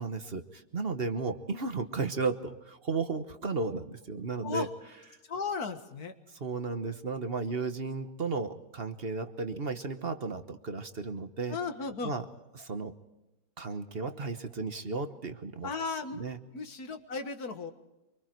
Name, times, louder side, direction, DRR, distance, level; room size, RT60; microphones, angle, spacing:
voice 1, 0.0-4.7 6.3-11.6 12.0-12.2 12.5-12.9 13.6-15.7 16.1-16.4, right 4 dB, 45° right, 9 dB, 1.3 m, -34 dB
voice 2, 5.3-6.1 11.5-12.1 15.6-16.3 16.5-17.7, left 4 dB, 80° left, 7 dB, 2.2 m, -35 dB
25.0 x 24.0 x 4.6 m, 0.99 s
omnidirectional pair, 1.6 m